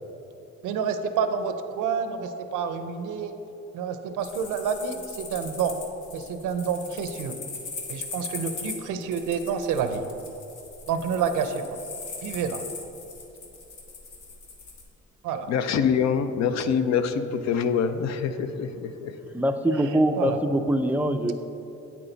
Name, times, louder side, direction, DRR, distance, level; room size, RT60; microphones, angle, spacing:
voice 1, 0.6-3.3 3.7-5.8 6.1-7.3 7.9-10.0 10.9-11.8 12.2-12.6 15.2-15.5 20.2-20.4, right 6 dB, 85° right, 8 dB, 0.6 m, -28 dB
sound 1, 4.2-14.8, left 4 dB, 80° left, 1.3 m, -40 dB
voice 2, 15.5-19.1, left 7 dB, 65° left, 10 dB, 0.5 m, -25 dB
voice 3, 19.3-21.3, right 1 dB, 5° right, 7 dB, 0.4 m, -23 dB
8.5 x 6.1 x 3.9 m, 3.0 s
cardioid pair, 90°, 30 cm